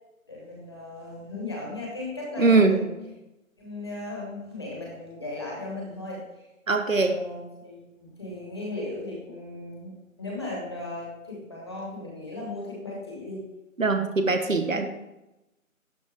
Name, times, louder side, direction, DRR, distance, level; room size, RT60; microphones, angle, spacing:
voice 1, 0.3-3.0 3.6-6.4 7.0-13.4, left 2 dB, 20° left, -4 dB, 1.2 m, -37 dB
voice 2, 2.4-2.8 6.7-7.2 13.8-14.9, right 3 dB, 65° right, 6 dB, 1.0 m, -21 dB
11.5 x 3.8 x 3.4 m, 0.95 s
figure-of-eight pair, 155°, 42 cm